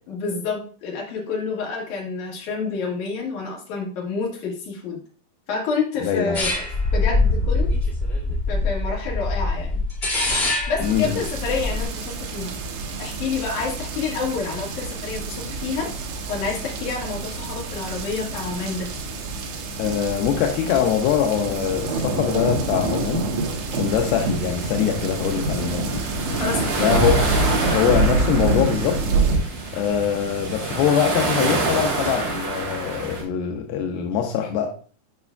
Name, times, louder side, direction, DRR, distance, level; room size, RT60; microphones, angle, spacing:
voice 1, 0.1-5.0 5.5-6.6 6.9-7.7 8.5-9.8 10.7-12.6 13.0-15.9 16.3-18.9 26.4-26.9, left 4 dB, 55° left, -2 dB, 2.8 m, -28 dB
voice 2, 6.0-6.4 10.8-11.2 19.8-26.1 26.8-27.3 27.6-29.0 29.7-34.7, left 8 dB, 80° left, 3 dB, 2.2 m, -23 dB
sound 1, 6.3-11.8, left 2 dB, 25° left, 1.3 m, -23 dB
sound 2, 10.8-29.4, right 2 dB, 85° right, 3.4 m, -27 dB
sound 3, 23.9-33.2, right 3 dB, 50° right, 3.2 m, -28 dB
9.3 x 5.5 x 2.3 m, 0.42 s
omnidirectional pair, 4.9 m